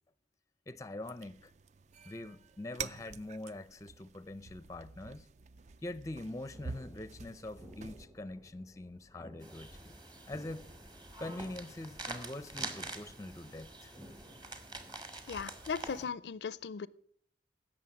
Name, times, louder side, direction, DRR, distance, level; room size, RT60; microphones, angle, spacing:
voice 1, 0.7-1.5 2.0-5.3 5.8-10.0 10.3-10.7 11.2-14.0, left 2 dB, 20° left, 0.5 m, -44 dB
sound 1, 1.0-8.0, right 5 dB, 40° right, 0.4 m, -48 dB
sound 2, 6.5-15.0, equal, 10° right, 0.8 m, -56 dB
sound 3, 9.4-16.1, right 2 dB, 25° right, 1.5 m, -46 dB
voice 2, 15.3-16.9, left 6 dB, 70° left, 0.4 m, -38 dB
16.5 x 6.4 x 7.2 m
head